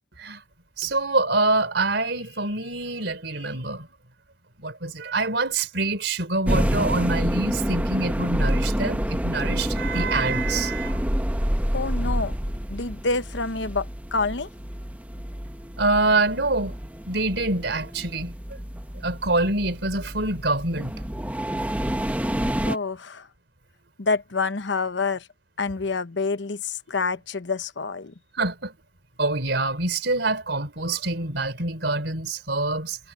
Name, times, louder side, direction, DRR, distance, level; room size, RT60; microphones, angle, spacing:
voice 1, 0.8-3.9 4.6-10.9 15.8-16.7 17.1-18.3 19.0-20.9 28.4-28.7 29.2-33.0, right 2 dB, 70° right, 3.9 m, -25 dB
sound 1, 6.5-22.8, equal, 10° right, 1.1 m, -28 dB
voice 2, 11.7-12.3 12.7-13.8 14.1-14.5 22.6-23.2 24.0-25.2 25.6-28.1, left 4 dB, 80° left, 1.0 m, -27 dB
head